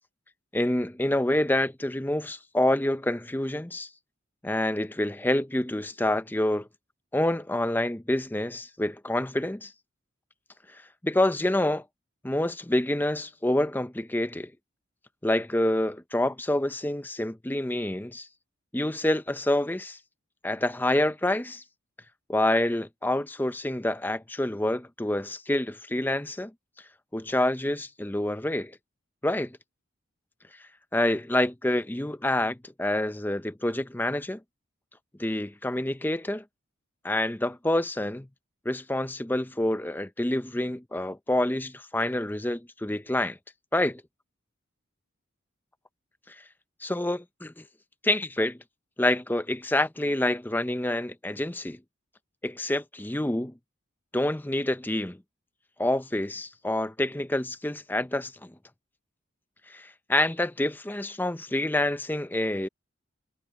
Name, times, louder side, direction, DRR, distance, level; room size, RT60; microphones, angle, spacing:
voice 1, 0.5-3.9 4.4-6.7 7.1-9.7 11.0-11.8 12.2-14.5 15.2-18.3 18.7-20.0 20.4-21.6 22.3-26.5 27.1-28.7 29.2-29.6 30.9-34.4 35.2-36.4 37.0-38.3 38.7-43.4 43.7-44.0 46.3-46.4 46.8-47.6 48.0-48.6 49.0-51.8 52.4-53.5 54.1-55.2 55.8-58.5 59.7-62.7, left 1 dB, 10° left, 0.6 m, -27 dB
head